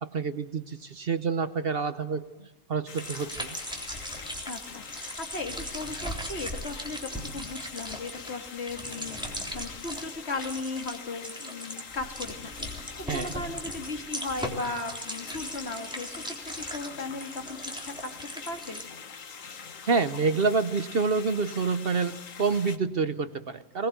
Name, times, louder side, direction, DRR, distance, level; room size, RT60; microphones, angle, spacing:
voice 1, 0.0-3.6 13.1-13.3 19.9-23.9, right 4 dB, 50° right, 12 dB, 1.0 m, -28 dB
sound 1, 2.9-22.8, left 6 dB, 90° left, 1.7 m, -44 dB
sound 2, 3.0-10.1 10.4-11.0 11.2-18.8, equal, 5° right, 3.5 m, -38 dB
voice 2, 4.4-18.8, left 3 dB, 55° left, 4 dB, 2.5 m, -37 dB
20.5 x 20.0 x 8.0 m, 1.1 s
omnidirectional pair, 1.3 m